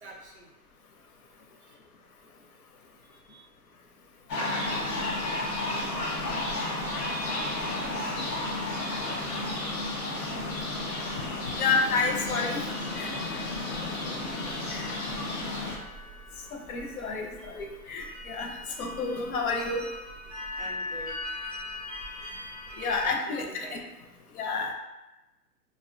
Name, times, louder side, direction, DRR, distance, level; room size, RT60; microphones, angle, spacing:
voice 1, 0.0-0.5 1.6-1.7 3.2-3.5 7.8-8.3 13.8-14.2 15.3-16.2 20.5-21.2 23.0-23.9, right 2 dB, 50° right, -1 dB, 0.4 m, -46 dB
sound 1, 4.3-15.8, left 2 dB, 90° left, 1.0 m, -32 dB
sound 2, 4.6-23.1, left 1 dB, 25° left, 0.3 m, -42 dB
voice 2, 11.6-12.6 12.9-13.1 14.7-14.9 16.5-19.9 22.8-23.8 24.3-24.7, left 4 dB, 65° left, 2 dB, 0.6 m, -30 dB
2.7 x 2.1 x 2.5 m, 1.0 s
hypercardioid pair, 170°, 46 cm